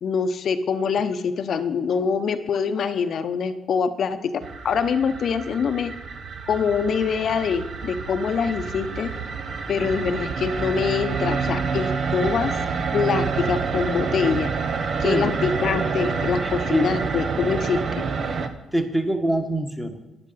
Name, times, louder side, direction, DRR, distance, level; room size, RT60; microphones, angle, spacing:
voice 1, 0.0-4.3 4.6-5.9 6.5-9.1 9.7-12.5 12.9-14.5 15.0-18.0, left 6 dB, 60° left, 10 dB, 0.8 m, -24 dB
sound 1, 4.4-18.5, right 5 dB, 55° right, 1.0 m, -28 dB
voice 2, 15.0-15.3 16.4-16.9 18.7-20.0, right 1 dB, 10° right, 6 dB, 1.5 m, -24 dB
10.0 x 9.9 x 5.8 m, 1.0 s
cardioid pair, 90°, 0 cm